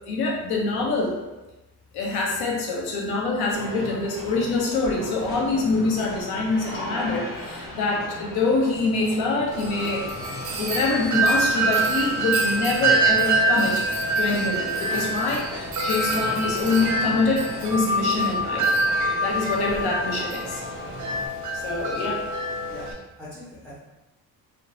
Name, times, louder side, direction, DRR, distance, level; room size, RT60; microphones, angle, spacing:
voice 1, 0.1-1.1 1.9-10.1 10.6-13.8 14.2-18.7 19.2-20.6 21.5-22.2, left 3 dB, 80° left, -1 dB, 0.7 m, -25 dB
sound 1, 3.5-21.3, left 1 dB, 35° left, 0.9 m, -38 dB
Wind chime, 9.5-22.9, right 2 dB, 50° right, 0.6 m, -25 dB
voice 2, 23.2-23.8, left 1 dB, 5° left, -10 dB, 0.7 m, -43 dB
3.0 x 2.1 x 2.6 m, 1.1 s
cardioid pair, 100°, 37 cm